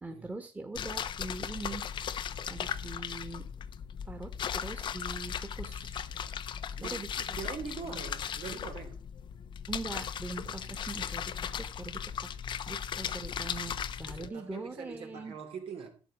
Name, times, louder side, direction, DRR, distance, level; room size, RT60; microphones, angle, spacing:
voice 1, 0.0-1.8 2.5-3.4 4.1-6.0 6.8-7.1 9.7-11.3 11.6-12.3 12.7-15.3, right 3 dB, 15° right, 2.1 m, -42 dB
sound 1, 0.7-14.3, left 8 dB, 50° left, 0.9 m, -37 dB
voice 2, 6.8-9.0 12.0-12.4 14.1-16.0, right 6 dB, 65° right, 3.5 m, -43 dB
12.0 x 8.2 x 5.3 m
cardioid pair, 110°, 10 cm